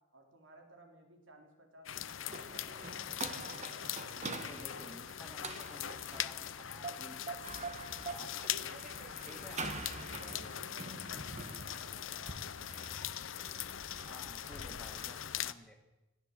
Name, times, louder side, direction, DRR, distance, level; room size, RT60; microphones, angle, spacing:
voice 1, 0.0-3.0 9.4-9.8 10.2-12.5, right 1 dB, 70° right, 4 dB, 4.4 m, -58 dB
sound 1, 1.9-15.5, left 10 dB, 75° left, 0.8 m, -41 dB
sound 2, 2.3-15.4, right 3 dB, 35° right, 1.8 m, -46 dB
voice 2, 4.1-7.2 7.5-8.6 9.2-9.7 14.0-15.8, equal, 5° left, 3 dB, 2.7 m, -54 dB
21.0 x 15.0 x 8.7 m, 1.0 s
head